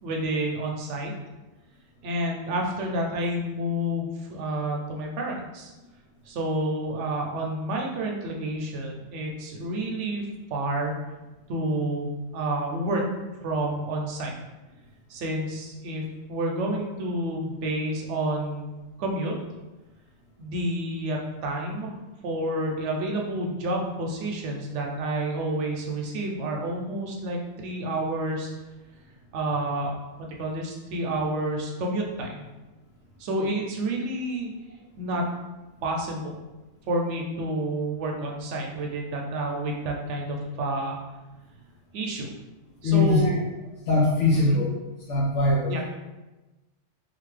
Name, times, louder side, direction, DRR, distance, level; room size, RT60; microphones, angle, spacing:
voice 1, 0.0-1.1 2.0-5.7 6.3-10.2 10.5-10.9 11.5-13.0 13.4-14.3 15.1-16.0 16.3-19.3 20.4-21.9 22.2-28.5 29.3-30.0 30.4-32.4 33.2-34.5 35.0-35.2 35.8-36.3 36.9-41.0 41.9-42.3 42.8-43.5 44.3-44.6 45.7-45.8, right 1 dB, 75° right, 0 dB, 0.9 m, -29 dB
voice 2, 42.8-43.3 43.9-44.8 45.1-45.8, left 2 dB, 80° left, -5 dB, 0.9 m, -21 dB
2.6 x 2.5 x 3.2 m, 1.1 s
omnidirectional pair, 1.2 m